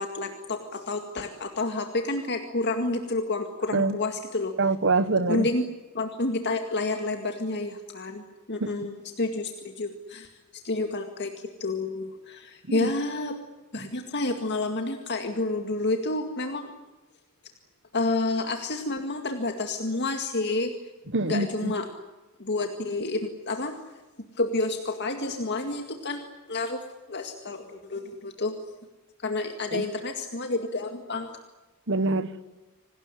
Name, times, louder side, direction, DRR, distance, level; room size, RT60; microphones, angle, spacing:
voice 1, 0.0-4.5 5.3-5.6 5.9-8.2 8.5-10.3 10.6-13.4 13.7-16.7 17.9-20.7 21.3-21.9 22.4-23.8 24.4-28.5 29.2-31.4, left 2 dB, 55° left, 2.1 m, -29 dB
voice 2, 4.6-5.5 8.6-8.7 12.7-12.9 21.1-21.7 29.7-29.8 31.9-32.3, right 3 dB, 60° right, 1.3 m, -25 dB
27.0 x 19.0 x 9.9 m
head